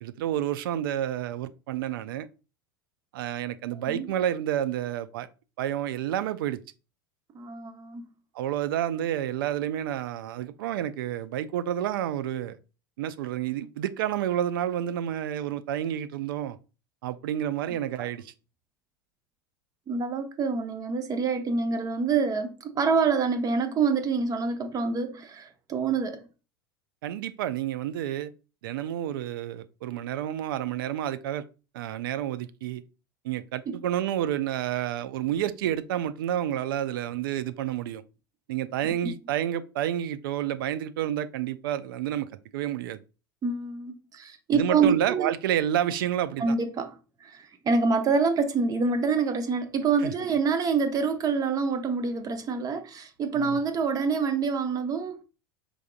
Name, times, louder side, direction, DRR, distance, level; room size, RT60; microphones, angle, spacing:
voice 1, 0.0-2.3 3.1-5.3 5.6-6.6 8.3-12.6 13.0-16.6 17.0-18.3 27.0-28.3 28.6-31.4 31.7-32.8 33.2-38.0 38.5-42.3 42.5-43.0 44.5-46.5 50.0-50.1 53.3-53.6, right 11 dB, 70° right, 0.4 m, -29 dB
voice 2, 7.3-8.0 19.9-26.2 33.7-33.8 39.0-39.1 43.4-45.3 46.4-46.9 47.2-55.2, right 5 dB, 30° right, 0.7 m, -26 dB
4.7 x 3.7 x 2.3 m
hypercardioid pair, 85°, 12 cm